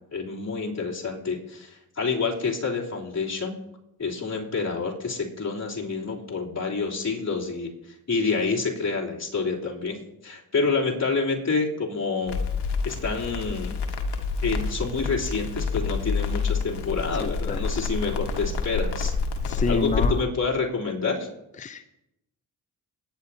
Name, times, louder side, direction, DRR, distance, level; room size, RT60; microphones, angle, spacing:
voice 1, 0.0-3.5 4.0-10.0 10.2-12.4 12.8-13.7 14.4-19.1 19.7-21.3, left 4 dB, 40° left, -3 dB, 3.5 m, -28 dB
Crackle, 12.3-20.1, left 4 dB, 70° left, 1.6 m, -28 dB
voice 2, 17.2-17.9 19.5-20.2 21.6-21.9, left 5 dB, 20° left, 9 dB, 0.7 m, -29 dB
21.0 x 10.0 x 2.9 m, 0.85 s
supercardioid pair, 65°, 42 cm